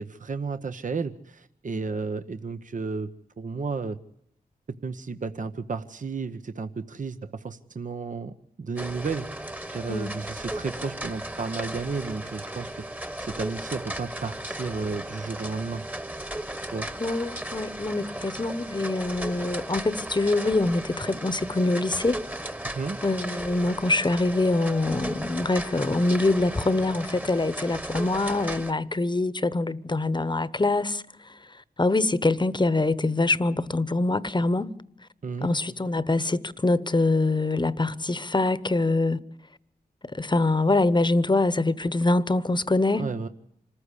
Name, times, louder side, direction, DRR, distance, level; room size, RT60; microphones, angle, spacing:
voice 1, 0.0-3.1 3.4-4.0 4.8-9.3 9.7-12.8 13.2-15.8 16.7-16.9 22.7-23.0 35.2-35.5 43.0-43.3, right 4 dB, 55° right, 0.9 m, -32 dB
sound 1, 8.8-28.7, right 1 dB, 10° right, 1.3 m, -36 dB
voice 2, 17.0-22.2 23.0-31.0 31.8-34.7 35.4-39.2 40.0-43.0, left 2 dB, 30° left, 1.1 m, -24 dB
25.5 x 14.5 x 8.4 m
cardioid pair, 50°, 16 cm